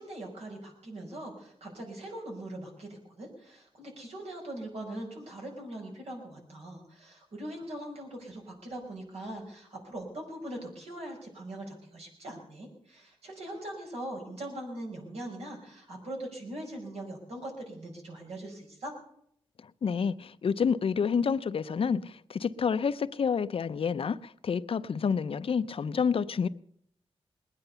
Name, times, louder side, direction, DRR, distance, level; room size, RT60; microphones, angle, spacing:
voice 1, 0.0-18.9, right 1 dB, 85° right, 5.6 m, -41 dB
voice 2, 19.8-26.5, left 6 dB, 60° left, 0.6 m, -29 dB
20.5 x 9.9 x 6.8 m
wide cardioid pair, 110°, 10 cm